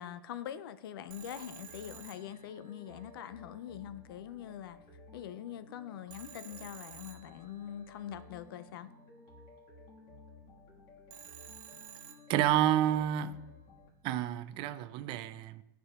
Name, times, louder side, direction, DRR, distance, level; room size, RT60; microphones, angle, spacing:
voice 1, 0.0-4.8 5.1-8.9, left 10 dB, 75° left, 0.5 m, -43 dB
sound 1, 1.1-13.9, left 3 dB, 40° left, 1.8 m, -56 dB
Telephone, 1.1-3.0 6.1-7.9 11.1-12.8, right 10 dB, 60° right, 0.8 m, -52 dB
voice 2, 12.3-13.4 14.0-15.6, right 11 dB, 45° right, 0.4 m, -29 dB
11.5 x 4.8 x 2.4 m
hypercardioid pair, 120°, 12 cm